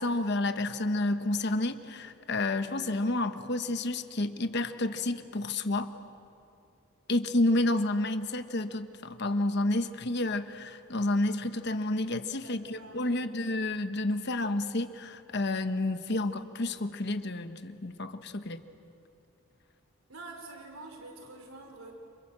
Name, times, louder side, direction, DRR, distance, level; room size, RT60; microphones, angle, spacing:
voice 1, 0.0-5.9 7.1-18.6, left 2 dB, 50° left, 9 dB, 1.2 m, -30 dB
voice 2, 12.2-13.1 20.1-21.9, right 2 dB, 80° right, 3 dB, 4.4 m, -47 dB
30.0 x 26.5 x 7.6 m, 2.6 s
head